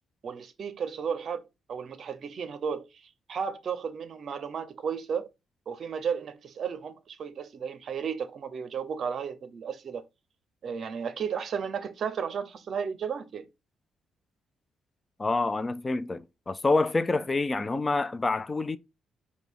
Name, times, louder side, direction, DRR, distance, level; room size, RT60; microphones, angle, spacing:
voice 1, 0.2-1.4 1.7-5.3 5.7-10.0 10.6-13.5 17.5-17.6, right 6 dB, 55° right, 0.7 m, -34 dB
voice 2, 15.2-18.8, left 3 dB, 25° left, 0.4 m, -27 dB
5.1 x 2.3 x 4.5 m
cardioid pair, 90°, 0 cm